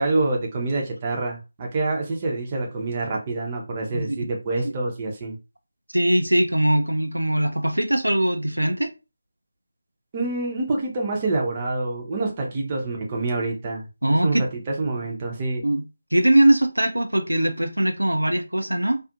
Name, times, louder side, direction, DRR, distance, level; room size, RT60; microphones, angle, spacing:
voice 1, 0.0-5.4 10.1-15.6, right 2 dB, 25° right, 0.6 m, -27 dB
voice 2, 5.9-8.9 14.0-14.5 15.6-15.8 16.1-19.0, right 1 dB, 80° right, 0.4 m, -21 dB
2.5 x 2.5 x 2.4 m
figure-of-eight pair, 160°, 0 cm